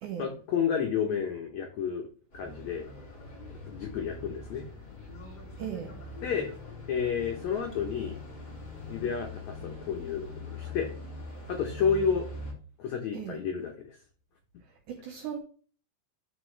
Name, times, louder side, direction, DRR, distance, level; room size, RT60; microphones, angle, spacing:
voice 1, 0.2-2.1 2.3-2.8 3.5-4.7 6.2-6.5 6.9-8.2 8.9-10.9 11.5-12.2 12.8-14.0, left 7 dB, 80° left, 1.6 m, -31 dB
sound 1, 2.3-12.5, left 2 dB, 30° left, 2.6 m, -43 dB
voice 2, 5.6-5.9 13.1-13.4 14.9-15.4, right 8 dB, 70° right, 2.0 m, -37 dB
11.5 x 4.2 x 3.2 m
omnidirectional pair, 4.6 m